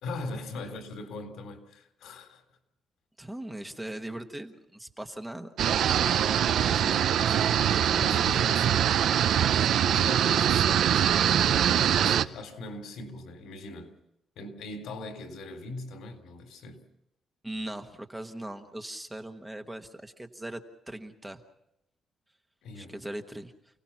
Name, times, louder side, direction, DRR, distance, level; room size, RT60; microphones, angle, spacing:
voice 1, 0.0-2.4 6.5-8.8 9.8-13.9 14.4-16.8 22.6-23.0, left 2 dB, 85° left, 3.5 m, -40 dB
voice 2, 3.2-5.5 17.4-20.6 20.9-21.4 22.7-23.5, right 1 dB, 5° right, 1.2 m, -39 dB
sound 1, 5.6-12.2, right 9 dB, 60° right, 0.7 m, -23 dB
29.5 x 18.0 x 5.8 m
cardioid pair, 175°, 0 cm